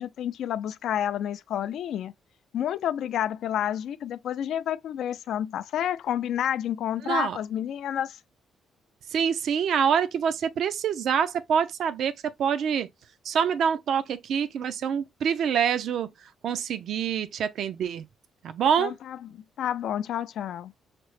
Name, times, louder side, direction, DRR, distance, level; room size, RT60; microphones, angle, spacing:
voice 1, 0.0-2.1 2.5-8.2 18.8-19.2 19.6-20.7, left 10 dB, 75° left, 0.3 m, -29 dB
voice 2, 7.0-7.4 9.1-12.9 13.2-18.1 18.4-18.9, right 7 dB, 70° right, 0.5 m, -26 dB
5.7 x 2.0 x 3.2 m
cardioid pair, 90°, 0 cm